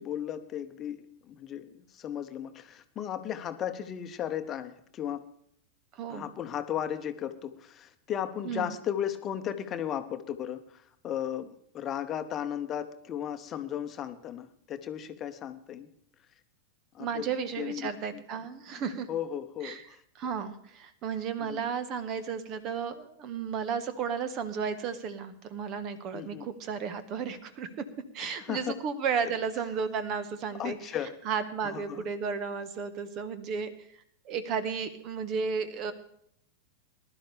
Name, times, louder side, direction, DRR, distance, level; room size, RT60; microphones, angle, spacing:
voice 1, 0.0-5.3 6.1-11.5 11.7-15.9 16.9-17.3 17.6-18.2 19.1-20.0 21.4-21.6 26.1-26.4 28.2-28.8 30.6-31.1 31.7-32.0, left 10 dB, 30° left, 9 dB, 1.0 m, -35 dB
voice 2, 5.9-6.3 8.4-8.7 17.0-19.1 19.6-19.8 20.1-27.9 28.1-30.8 31.2-33.7 34.2-35.9, right 6 dB, 35° right, 12 dB, 1.3 m, -33 dB
20.0 x 12.0 x 3.4 m, 0.67 s
figure-of-eight pair, 90°, 0 cm